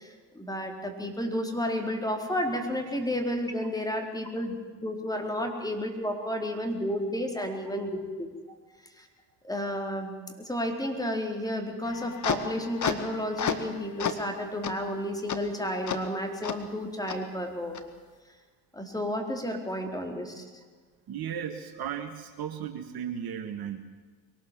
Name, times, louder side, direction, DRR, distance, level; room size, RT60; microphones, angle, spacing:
voice 1, 0.0-8.3 8.9-9.1 9.4-17.9 18.7-20.6, equal, 5° left, 2 dB, 4.3 m, -32 dB
sound 1, 11.8-13.7 14.0-14.3 14.6-14.7 15.3-15.4 15.9-16.0 16.4-16.6 17.1-17.2 17.7-17.8, left 7 dB, 35° left, 2.0 m, -31 dB
voice 2, 21.1-23.8, right 8 dB, 45° right, 6 dB, 2.0 m, -35 dB
23.0 x 18.5 x 7.6 m, 1.4 s
hypercardioid pair, 65°, 49 cm